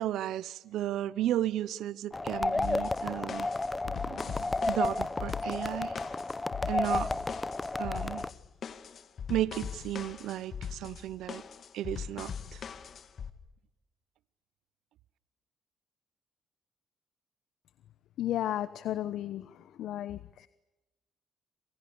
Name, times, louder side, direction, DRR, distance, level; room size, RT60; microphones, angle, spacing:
voice 1, 0.0-3.5 3.8-6.0 6.7-7.1 7.8-8.2 9.3-11.4 11.7-12.6, right 13 dB, 85° right, 18 dB, 0.8 m, -34 dB
sound 1, 2.1-8.3, left 2 dB, 20° left, 0.9 m, -32 dB
sound 2, 2.6-13.3, left 7 dB, 55° left, 2.3 m, -41 dB
voice 2, 18.2-20.5, left 12 dB, 80° left, 15 dB, 1.0 m, -34 dB
28.5 x 26.5 x 7.1 m, 1.0 s
cardioid pair, 90°, 0 cm